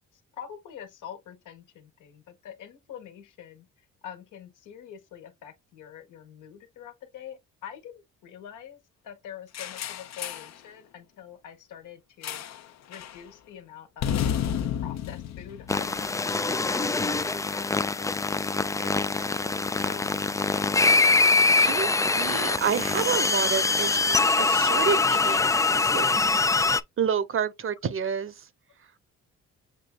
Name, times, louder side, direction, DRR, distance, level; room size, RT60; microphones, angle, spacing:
voice 1, 0.1-7.9 8.2-12.4 12.9-14.4 14.8-18.4 19.7-21.0, left 9 dB, 85° left, 1.6 m, -45 dB
sound 1, 9.5-10.6 12.2-12.7 12.9-13.2 14.0-16.3, left 9 dB, 60° left, 0.8 m, -31 dB
sound 2, 15.7-26.8, left 3 dB, 10° left, 0.3 m, -24 dB
voice 2, 21.6-26.4 27.0-28.5, right 7 dB, 45° right, 0.8 m, -29 dB
7.4 x 2.6 x 2.4 m
cardioid pair, 90°, 30 cm